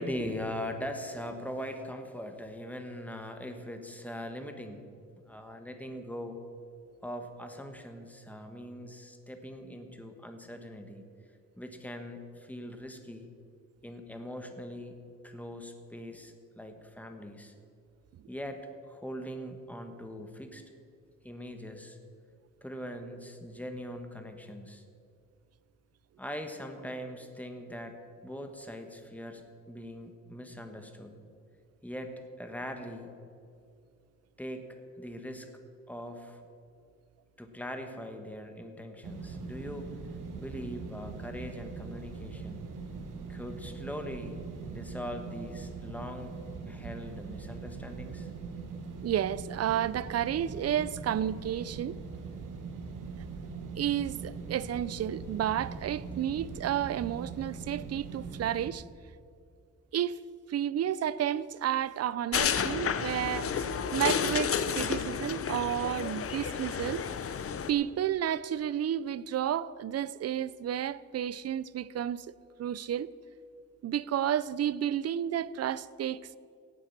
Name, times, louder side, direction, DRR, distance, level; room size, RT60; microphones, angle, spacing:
voice 1, 0.0-4.8 5.3-6.4 7.0-11.0 11.6-13.3 13.8-15.0 15.2-17.5 18.3-20.6 21.2-22.0 22.6-24.8 26.2-28.0 28.2-31.2 31.8-33.1 34.4-35.5 35.9-36.4 37.4-39.9 40.4-42.7 43.3-44.4 44.7-46.4 46.7-48.3, equal, 5° left, 1.2 m, -41 dB
sound 1, 39.0-58.7, right 4 dB, 80° right, 1.5 m, -41 dB
voice 2, 49.0-52.0 53.7-58.8 59.9-60.2 60.5-67.0 67.7-73.1 73.8-76.4, right 10 dB, 55° right, 0.4 m, -31 dB
sound 2, 62.3-67.7, left 7 dB, 45° left, 0.7 m, -31 dB
16.5 x 8.7 x 5.9 m
wide cardioid pair, 140°, 31 cm